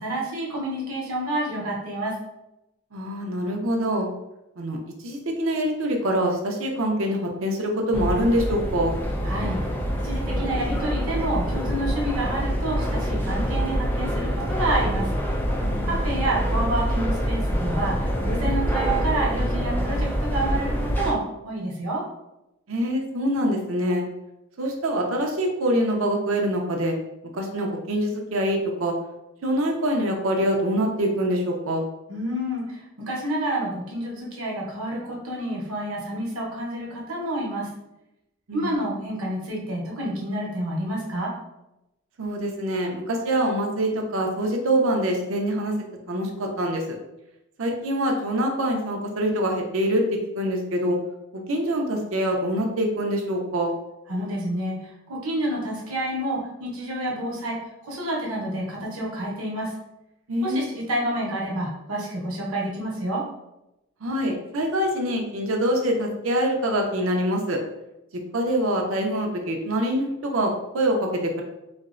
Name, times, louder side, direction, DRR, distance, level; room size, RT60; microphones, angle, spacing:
voice 1, 0.0-2.1 9.2-9.6 10.0-15.1 15.9-22.0 32.1-37.7 38.5-41.3 54.1-54.8 55.1-59.7 60.4-63.2, right 1 dB, 90° right, -3 dB, 0.9 m, -29 dB
voice 2, 2.9-4.1 4.6-4.8 5.0-8.9 15.6-16.0 22.7-24.0 24.6-26.9 27.3-28.9 29.4-31.9 38.5-38.9 42.2-45.7 46.1-46.8 47.6-50.0 50.3-51.0 51.5-53.7 60.3-60.7 64.0-67.6 68.3-71.4, equal, 70° right, 2 dB, 0.6 m, -25 dB
sound 1, 7.9-21.1, equal, 10° left, 0.4 m, -25 dB
4.1 x 2.0 x 2.4 m, 0.91 s
head